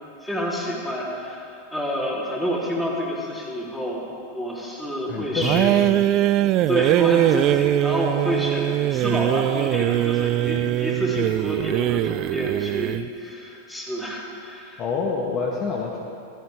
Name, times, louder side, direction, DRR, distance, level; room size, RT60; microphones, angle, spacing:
voice 1, 0.2-4.1 4.3-5.8 6.7-14.8, equal, 5° left, -5 dB, 3.5 m, -28 dB
voice 2, 5.1-6.0 14.8-16.0, left 4 dB, 35° left, -1 dB, 1.4 m, -27 dB
sound 1, 5.4-13.1, right 13 dB, 45° right, 0.3 m, -21 dB
15.5 x 13.5 x 3.6 m, 2.5 s
hypercardioid pair, 100°, 0 cm